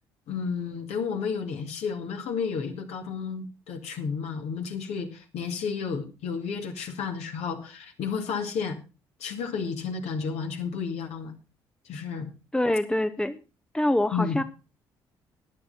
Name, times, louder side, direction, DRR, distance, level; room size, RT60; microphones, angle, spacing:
voice 1, 0.3-8.8 9.2-11.3 11.9-12.3 14.1-14.4, left 5 dB, 60° left, 4 dB, 2.3 m, -32 dB
voice 2, 12.5-13.4 13.7-14.4, left 1 dB, 5° left, 11 dB, 1.1 m, -25 dB
13.5 x 10.5 x 4.1 m, 0.32 s
figure-of-eight pair, 45°, 12 cm